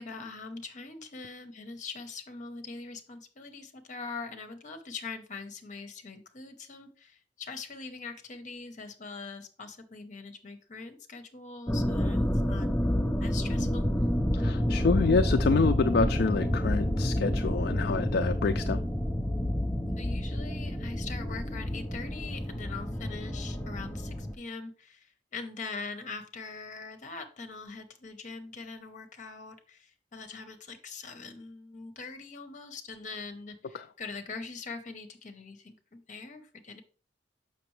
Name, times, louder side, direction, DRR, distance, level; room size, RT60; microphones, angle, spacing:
voice 1, 0.0-12.7 13.2-13.9 20.0-36.8, left 4 dB, 45° left, 7 dB, 0.9 m, -42 dB
sound 1, 11.7-24.3, equal, 10° left, 0.6 m, -29 dB
voice 2, 14.3-18.8 33.7-33.8, left 4 dB, 60° left, 8 dB, 0.4 m, -27 dB
6.7 x 5.9 x 3.2 m, 0.39 s
head